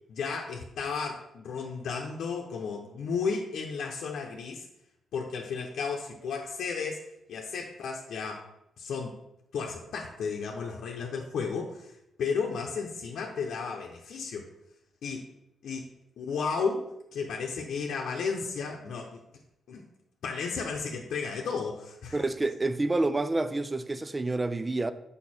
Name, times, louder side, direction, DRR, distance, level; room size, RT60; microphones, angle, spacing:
voice 1, 0.1-4.6 5.1-7.0 7.3-8.5 8.8-9.2 9.5-11.9 12.2-14.5 15.0-15.3 15.6-15.9 16.2-16.9 17.1-19.2 19.7-19.8 20.2-22.2, left 5 dB, 80° left, 0.8 m, -33 dB
voice 2, 22.1-24.9, right 2 dB, 20° right, 0.4 m, -28 dB
6.5 x 5.4 x 4.3 m
cardioid pair, 125°, 0 cm